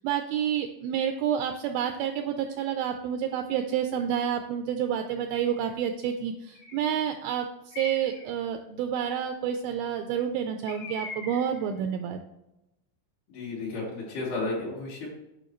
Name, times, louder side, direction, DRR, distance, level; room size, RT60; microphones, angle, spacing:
voice 1, 0.0-12.2, right 9 dB, 85° right, 6 dB, 2.2 m, -29 dB
Bird, 5.3-5.8 6.5-7.1 7.7-8.3 10.7-11.7, left 2 dB, 55° left, 1.9 m, -41 dB
voice 2, 13.3-15.1, left 3 dB, 75° left, -7 dB, 4.3 m, -33 dB
9.4 x 5.7 x 3.0 m, 0.88 s
omnidirectional pair, 4.7 m